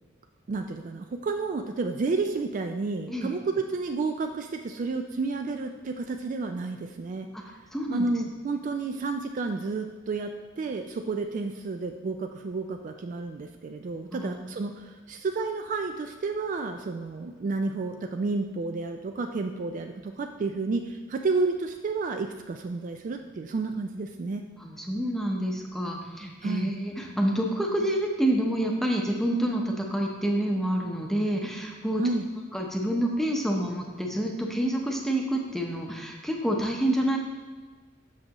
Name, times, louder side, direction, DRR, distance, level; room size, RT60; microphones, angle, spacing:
voice 1, 0.5-7.3 7.9-24.5 26.4-26.7 32.0-32.2, right 3 dB, 40° right, 5 dB, 0.3 m, -31 dB
voice 2, 7.3-8.1 14.1-14.5 24.6-32.0 32.5-37.2, right 1 dB, ahead, 0 dB, 0.7 m, -28 dB
7.5 x 6.1 x 2.9 m, 1.4 s
head